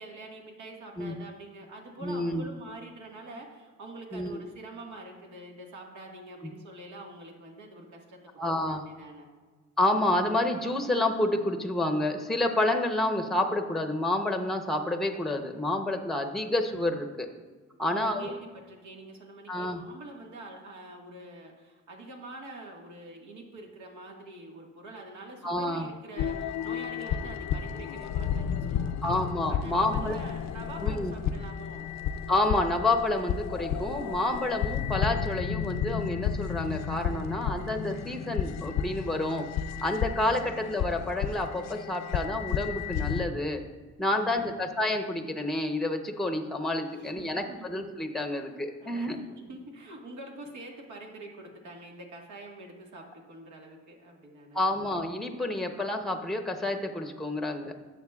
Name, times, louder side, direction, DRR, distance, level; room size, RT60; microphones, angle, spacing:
voice 1, 0.0-8.2 8.6-9.3 17.8-29.2 29.5-31.9 44.1-44.5 46.9-47.7 48.8-49.1 49.4-54.6, right 2 dB, 70° right, 0 dB, 1.7 m, -46 dB
voice 2, 2.0-2.5 4.1-4.4 8.4-8.8 9.8-17.3 17.8-18.3 19.5-19.8 25.4-25.9 29.0-30.2 30.8-31.1 32.3-39.5 39.8-43.6 44.0-49.2 54.5-57.7, left 1 dB, ahead, 5 dB, 0.8 m, -29 dB
sound 1, 26.2-43.3, left 8 dB, 60° left, 0.5 m, -32 dB
11.5 x 7.3 x 2.4 m, 1.4 s
cardioid pair, 90°, 30 cm